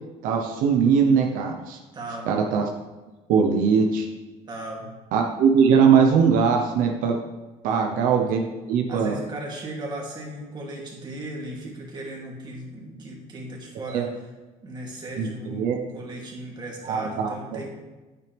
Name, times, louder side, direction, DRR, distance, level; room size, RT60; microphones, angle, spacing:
voice 1, 0.2-1.8 2.3-2.6 3.3-4.1 5.1-7.2 7.6-9.2 13.9-14.0 15.2-15.7 16.8-17.7, right 6 dB, 85° right, 2 dB, 1.0 m, -21 dB
voice 2, 1.9-2.3 4.5-4.9 7.6-7.9 8.9-14.1 14.6-17.7, right 1 dB, 30° right, -2 dB, 2.7 m, -36 dB
9.4 x 9.0 x 3.5 m, 1.2 s
cardioid pair, 130°, 14 cm